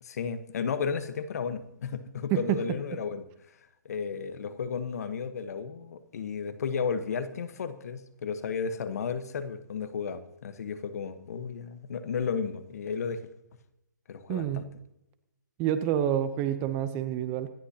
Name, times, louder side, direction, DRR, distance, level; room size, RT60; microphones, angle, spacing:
voice 1, 0.0-3.2 3.8-13.2 14.1-14.6, left 6 dB, 55° left, 11 dB, 1.3 m, -33 dB
voice 2, 14.3-14.7 15.6-17.5, right 11 dB, 20° right, 11 dB, 0.8 m, -28 dB
25.5 x 11.5 x 2.9 m, 0.86 s
hypercardioid pair, 155°, 10 cm